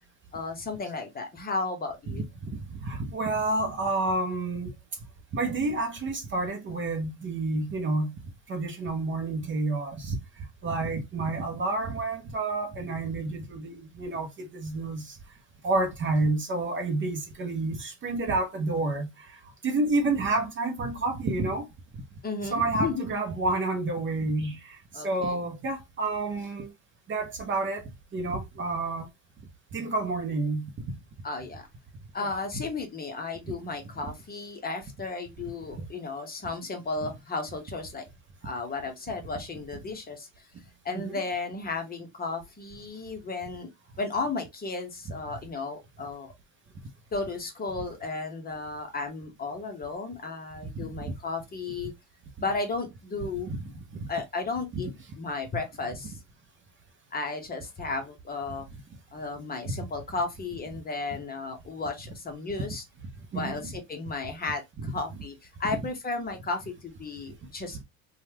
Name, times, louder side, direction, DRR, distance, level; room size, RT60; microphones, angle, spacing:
voice 1, 0.3-2.2 22.2-23.1 24.9-25.5 31.2-31.7 32.1-38.0 38.4-40.4 40.8-43.7 44.0-46.3 47.1-51.9 52.4-53.8 54.1-54.9 55.2-56.2 57.1-58.7 59.1-62.8 63.3-67.8, left 3 dB, 20° left, 0.9 m, -34 dB
voice 2, 2.5-4.7 5.3-8.2 8.5-10.2 10.6-15.2 15.6-19.3 19.6-21.7 22.5-26.7 27.1-27.8 28.1-29.1 29.7-30.7 32.2-32.4 40.9-41.1 50.8-51.1 53.5-54.0 63.3-63.6, right 2 dB, 30° right, 0.7 m, -29 dB
3.1 x 2.4 x 2.8 m
supercardioid pair, 100°, 42 cm